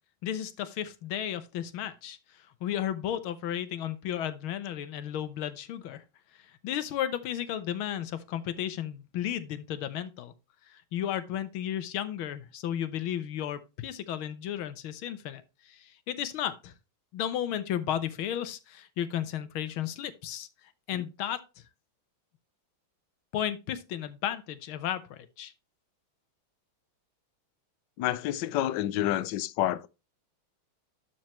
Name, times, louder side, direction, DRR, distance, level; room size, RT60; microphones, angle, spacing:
voice 1, 0.2-2.2 2.6-6.0 6.6-10.3 10.7-16.7 17.1-20.5 20.9-21.4 23.3-25.5, left 10 dB, 85° left, 1.7 m, -33 dB
voice 2, 28.0-29.9, left 13 dB, 70° left, 1.2 m, -29 dB
12.0 x 4.5 x 3.0 m
omnidirectional pair, 2.2 m